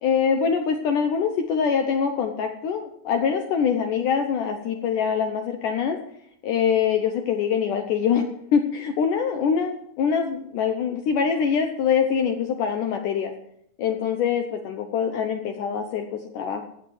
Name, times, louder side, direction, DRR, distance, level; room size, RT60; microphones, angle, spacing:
voice 1, 0.0-6.0 6.4-8.3 8.5-13.3 13.8-16.6, left 7 dB, 70° left, 5 dB, 2.1 m, -24 dB
14.5 x 8.1 x 8.0 m, 0.72 s
omnidirectional pair, 4.5 m